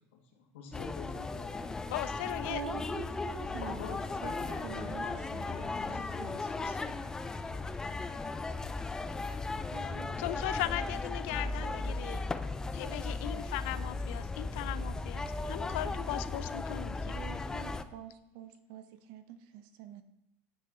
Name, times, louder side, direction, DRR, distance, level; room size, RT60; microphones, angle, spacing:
voice 1, 0.1-1.6 3.6-7.2, left 5 dB, 90° left, 2 dB, 2.2 m, -47 dB
sound 1, 0.7-17.8, left 3 dB, 10° left, 0.4 m, -36 dB
voice 2, 1.9-2.6 10.2-12.3 12.8-17.2, left 15 dB, 70° left, 15 dB, 0.6 m, -38 dB
voice 3, 2.5-4.3 4.6-6.4 9.7-10.2 17.1-20.0, right 9 dB, 60° right, 11 dB, 1.0 m, -46 dB
10.0 x 8.1 x 4.4 m, 0.81 s
supercardioid pair, 155°, 7 cm